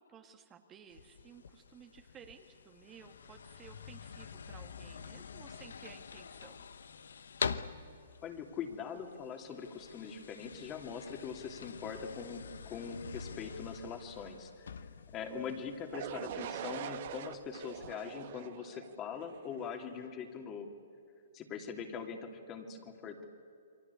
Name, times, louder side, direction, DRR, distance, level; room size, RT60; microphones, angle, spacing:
voice 1, 0.0-6.7 15.2-15.8, right 7 dB, 20° right, 5 dB, 1.7 m, -56 dB
sound 1, 0.9-17.9, left 6 dB, 75° left, 1.0 m, -46 dB
voice 2, 8.2-14.7 15.1-20.7 21.3-23.2, left 6 dB, 25° left, 4 dB, 2.9 m, -42 dB
sound 2, 15.9-19.8, right 10 dB, 55° right, 1.6 m, -43 dB
28.5 x 23.0 x 8.4 m, 2.4 s
hypercardioid pair, 130°, 0 cm